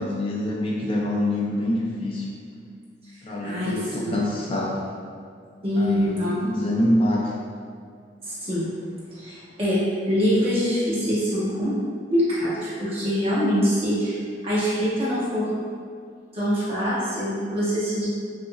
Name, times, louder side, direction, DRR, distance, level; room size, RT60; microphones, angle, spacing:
voice 1, 0.0-2.3 3.2-4.9 5.8-7.3, left 1 dB, 30° left, -3 dB, 0.3 m, -25 dB
voice 2, 3.4-4.2 5.6-6.3 8.2-8.7 9.2-11.7 12.1-14.2 14.4-15.5 16.3-18.1, equal, 35° right, -10 dB, 1.0 m, -24 dB
5.1 x 2.0 x 2.3 m, 2.2 s
head